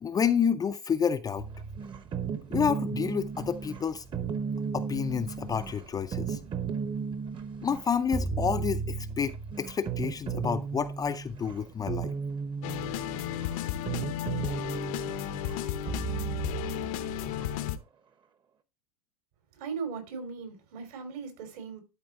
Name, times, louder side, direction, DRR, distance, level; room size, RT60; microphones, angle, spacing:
voice 1, 0.0-1.4 2.5-4.0 4.7-6.4 7.6-12.1, left 7 dB, 20° left, 0.5 m, -29 dB
sound 1, 1.4-17.5, right 6 dB, 25° right, 0.9 m, -35 dB
sound 2, 12.6-17.8, left 11 dB, 65° left, 0.9 m, -34 dB
voice 2, 19.6-21.8, right 5 dB, 70° right, 3.4 m, -38 dB
11.5 x 3.9 x 3.6 m
supercardioid pair, 120°, 19 cm